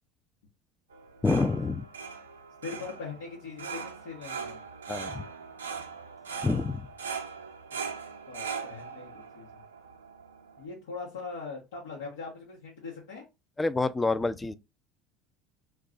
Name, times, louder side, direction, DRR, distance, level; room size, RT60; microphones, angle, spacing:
sound 1, 0.9-10.6, right 6 dB, 90° right, 0.4 m, -40 dB
voice 1, 1.2-1.9 4.9-5.2 6.4-6.9 13.6-14.5, left 3 dB, 15° left, 0.3 m, -27 dB
voice 2, 2.6-4.6 7.7-7.8 8.3-9.6 10.6-13.3, left 4 dB, 80° left, 1.0 m, -41 dB
2.3 x 2.3 x 3.7 m
hypercardioid pair, 70°, 0 cm